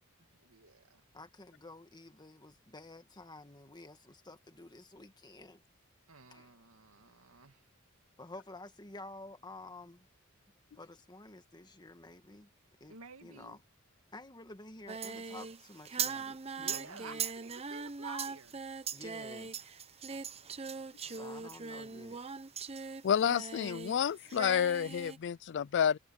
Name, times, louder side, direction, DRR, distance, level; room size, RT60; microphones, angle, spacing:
voice 1, 0.2-1.0 6.1-7.6 12.9-13.6 16.6-18.6 21.0-21.4, right 4 dB, 75° right, 2.4 m, -51 dB
voice 2, 1.1-5.6 6.3-6.5 8.2-10.1 10.8-12.5 12.8-13.6 14.1-17.3 18.9-19.6 21.1-22.2, left 2 dB, 20° left, 1.8 m, -51 dB
Singing, 14.9-24.0 24.3-25.2, right 6 dB, 30° right, 0.8 m, -40 dB
voice 3, 23.0-26.0, left 8 dB, 55° left, 0.4 m, -29 dB
head